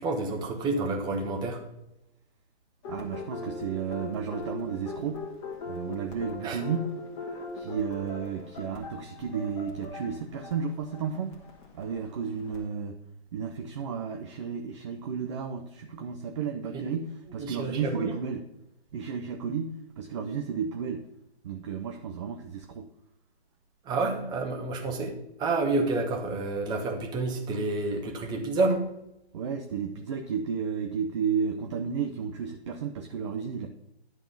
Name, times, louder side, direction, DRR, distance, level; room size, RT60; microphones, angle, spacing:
voice 1, 0.0-1.6 6.4-6.6 16.7-16.8 17.4-18.1 23.8-28.9, right 3 dB, 15° right, 2 dB, 1.1 m, -29 dB
sound 1, 2.8-12.6, left 3 dB, 25° left, 1.5 m, -40 dB
voice 2, 2.9-5.2 5.7-6.9 7.5-11.4 11.7-13.0 13.3-18.4 18.9-21.1 21.4-22.9 25.0-25.1 29.3-33.7, right 6 dB, 30° right, 5 dB, 0.5 m, -33 dB
10.5 x 3.6 x 6.9 m, 0.86 s
hypercardioid pair, 140°, 33 cm